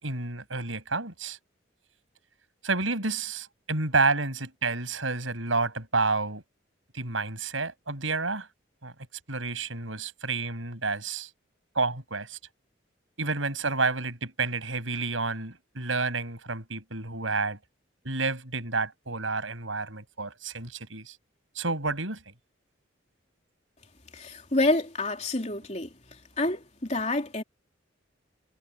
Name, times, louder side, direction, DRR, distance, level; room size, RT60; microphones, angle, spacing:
voice 1, 0.0-1.4 2.6-6.4 6.9-8.5 8.8-8.9 9.3-11.3 11.8-12.4 13.2-17.6 18.0-21.2 21.6-22.2, right 3 dB, 85° right, 7.3 m, -30 dB
voice 2, 24.1-25.9 26.4-27.4, left 2 dB, 35° left, 3.4 m, -28 dB
head